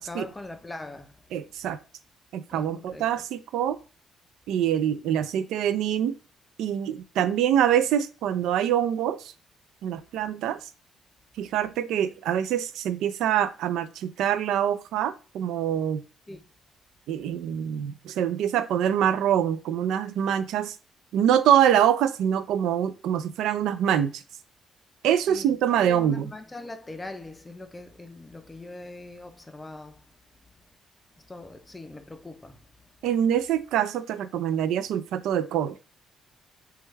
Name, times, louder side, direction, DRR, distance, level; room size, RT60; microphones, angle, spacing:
voice 1, 0.0-1.3 2.5-3.1 16.3-16.5 25.3-30.0 31.3-32.7, left 2 dB, 15° left, 0.4 m, -41 dB
voice 2, 1.3-1.8 2.3-3.8 4.5-6.2 6.6-9.3 9.8-10.6 11.4-16.0 17.1-20.8 21.1-24.2 25.0-26.3 33.0-35.8, right 10 dB, 90° right, 0.3 m, -25 dB
3.1 x 2.2 x 3.2 m
cardioid pair, 120°, 0 cm